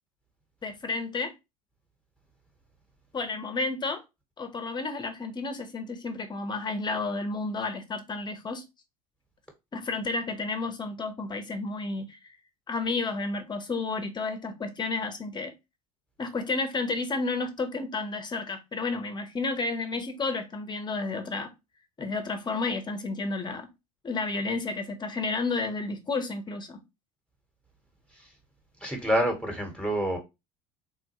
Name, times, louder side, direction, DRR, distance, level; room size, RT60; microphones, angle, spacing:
voice 1, 0.6-1.3 3.1-4.0 4.4-8.6 9.7-12.2 12.7-15.5 16.2-21.5 22.0-23.7 24.0-26.8, left 3 dB, 25° left, 0.8 m, -31 dB
voice 2, 28.8-30.2, equal, 5° left, 1.1 m, -27 dB
3.7 x 2.2 x 2.9 m
hypercardioid pair, 75°, 19 cm